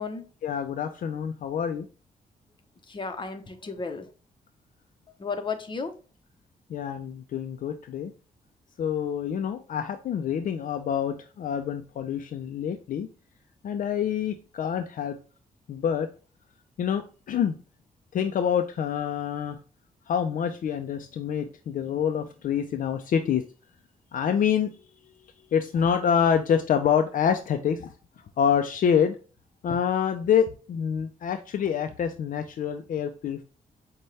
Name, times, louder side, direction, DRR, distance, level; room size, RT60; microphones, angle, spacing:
voice 1, 0.4-1.9 6.7-8.1 8.8-13.1 13.6-15.2 15.7-16.1 16.8-17.5 18.1-19.6 20.1-23.5 24.1-24.7 25.5-27.9 28.4-29.2 29.6-33.4, left 8 dB, 65° left, 7 dB, 0.4 m, -26 dB
voice 2, 2.9-4.1 5.2-5.9, left 4 dB, 30° left, 6 dB, 0.7 m, -33 dB
5.3 x 2.2 x 3.1 m, 0.35 s
cardioid pair, 80°, 15 cm